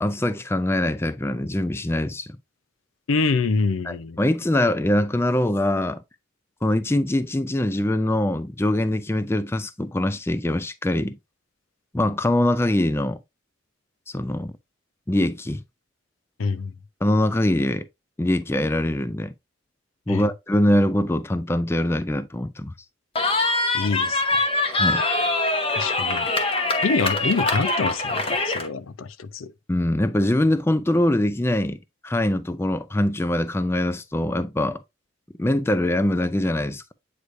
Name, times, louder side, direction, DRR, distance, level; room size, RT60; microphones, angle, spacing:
voice 1, 0.0-2.4 3.8-6.0 6.6-11.2 11.9-13.2 14.1-14.5 15.1-15.6 17.0-17.9 18.2-19.3 20.1-22.7 24.7-25.0 29.7-34.8 35.4-36.8, left 1 dB, 10° left, 0.3 m, -23 dB
voice 2, 3.1-4.2 16.4-16.7 20.1-20.3 23.7-24.5 25.7-26.3 26.8-29.5, left 4 dB, 90° left, 0.5 m, -26 dB
Cheering, 23.2-28.7, left 2 dB, 25° left, 0.9 m, -23 dB
8.1 x 4.8 x 2.5 m
head